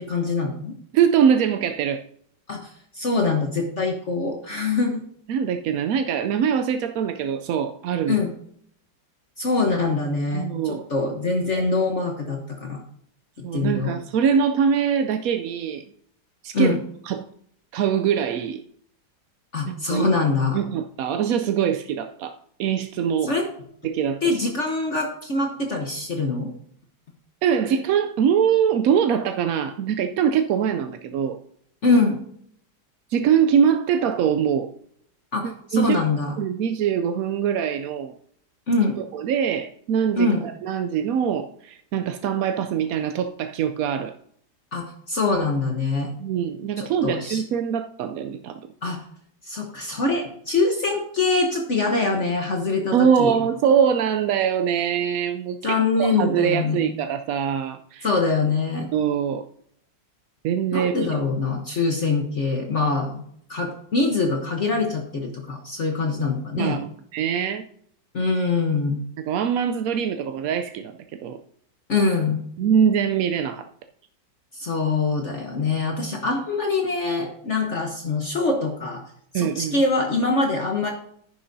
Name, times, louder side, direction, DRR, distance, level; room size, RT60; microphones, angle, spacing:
voice 1, 0.0-0.8 2.5-5.0 8.1-8.3 9.4-12.8 13.4-13.9 16.5-16.8 19.5-20.6 23.2-23.5 24.2-26.5 31.8-32.2 35.3-36.4 38.7-39.0 40.2-40.4 44.7-46.1 46.8-47.4 48.8-49.0 49.4-53.3 55.6-56.9 58.0-58.9 60.7-63.2 63.5-66.8 68.1-69.0 71.9-72.4 74.5-79.0 79.3-80.9, left 3 dB, 45° left, 2 dB, 1.2 m, -24 dB
voice 2, 0.9-2.0 5.3-8.2 10.3-10.9 13.4-15.8 16.4-16.8 17.1-17.2 17.7-18.6 19.7-20.1 20.5-23.3 23.8-24.2 27.4-31.4 33.1-34.7 35.4-36.0 36.4-38.1 39.0-44.1 46.2-48.6 52.9-58.1 58.9-59.4 60.4-61.2 66.6-67.6 69.2-71.4 72.6-73.7 79.3-79.8, right 8 dB, 70° right, 7 dB, 0.8 m, -23 dB
11.0 x 9.8 x 2.7 m, 0.66 s
omnidirectional pair, 1.9 m